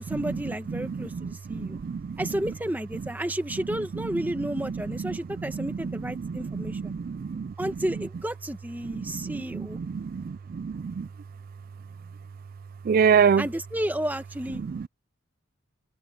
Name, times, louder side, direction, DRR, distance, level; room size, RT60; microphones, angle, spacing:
voice 1, 0.0-1.8 2.2-6.9 7.6-9.8 13.4-14.6, right 1 dB, 10° right, 1.1 m, -32 dB
voice 2, 0.7-2.2 4.7-5.1 5.4-7.5 9.0-11.1 12.9-13.5 14.6-14.9, right 6 dB, 45° right, 0.3 m, -27 dB
head